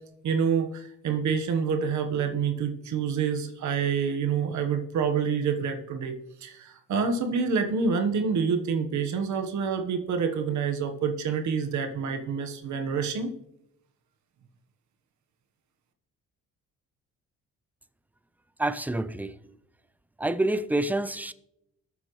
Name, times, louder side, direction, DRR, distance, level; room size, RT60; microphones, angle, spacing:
voice 1, 0.2-6.1 6.4-13.3, right 6 dB, 70° right, 1.3 m, -27 dB
voice 2, 18.6-19.4 20.2-21.3, right 2 dB, 5° right, 0.5 m, -27 dB
20.5 x 7.3 x 3.2 m
cardioid pair, 90°, 30 cm